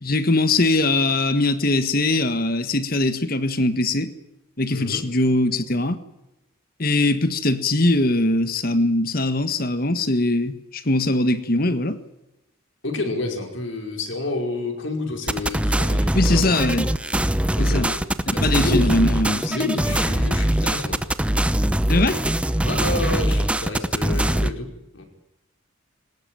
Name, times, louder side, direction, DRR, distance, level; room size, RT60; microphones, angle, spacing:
voice 1, 0.0-4.1 4.6-6.0 6.8-12.0 16.1-16.9 17.6-17.9 18.3-19.7 21.9-22.2, left 2 dB, 45° left, 1.6 m, -21 dB
voice 2, 4.7-5.0 12.8-16.7 17.6-18.0 18.3-18.9 19.4-21.0 22.6-25.0, left 2 dB, 65° left, 5.2 m, -29 dB
sound 1, 15.3-24.5, right 1 dB, 5° right, 0.8 m, -22 dB
22.0 x 19.0 x 9.1 m
head